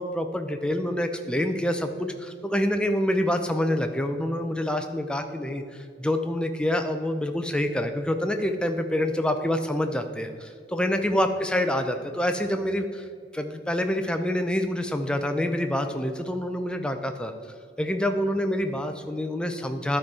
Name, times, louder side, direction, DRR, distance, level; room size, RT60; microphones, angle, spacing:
voice 1, 0.0-13.1 13.3-17.3 17.8-20.0, left 1 dB, 5° left, 6 dB, 0.5 m, -27 dB
11.0 x 4.5 x 4.7 m, 2.2 s
head